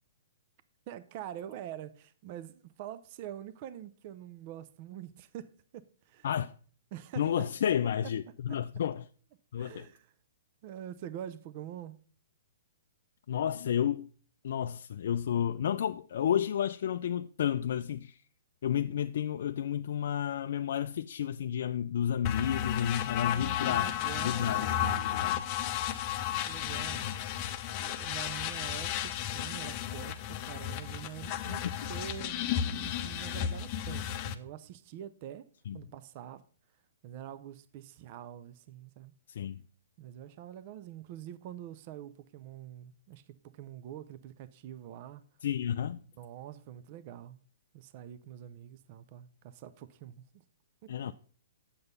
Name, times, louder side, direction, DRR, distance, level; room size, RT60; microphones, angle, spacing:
voice 1, 0.9-6.3 6.9-7.5 8.5-8.6 9.6-10.1 10.6-12.0 23.1-24.7 26.5-27.4 27.8-35.5 35.7-36.4 37.0-39.1 40.0-45.2 46.2-47.4 47.7-50.2 50.8-50.9, right 11 dB, 40° right, 0.5 m, -45 dB
voice 2, 7.2-9.0 9.5-9.9 13.3-14.1 14.4-18.2 18.6-23.9 24.2-25.5 27.0-27.1 31.4-31.6 35.7-35.8 39.3-39.6 45.4-46.0 50.9-51.1, left 9 dB, 65° left, 0.4 m, -31 dB
sound 1, 22.2-34.3, left 10 dB, 35° left, 0.7 m, -33 dB
7.9 x 6.8 x 5.3 m
hypercardioid pair, 140°, 0 cm